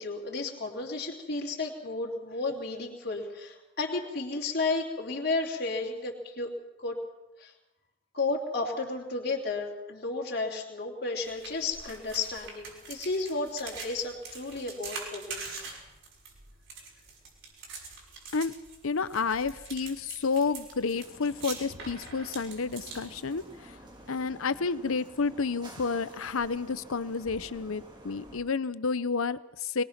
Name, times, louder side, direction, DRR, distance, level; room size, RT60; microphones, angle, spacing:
voice 1, 0.0-6.5 6.8-7.0 7.4-7.5 8.1-15.4, left 3 dB, 50° left, -2 dB, 3.1 m, -33 dB
sound 1, 11.2-23.7, right 4 dB, 65° right, 6.4 m, -44 dB
voice 2, 18.8-23.4 24.1-29.8, left 4 dB, 80° left, 15 dB, 0.8 m, -30 dB
sound 2, 20.9-28.4, right 1 dB, 20° right, 2.2 m, -50 dB
23.0 x 20.0 x 6.0 m, 0.98 s
head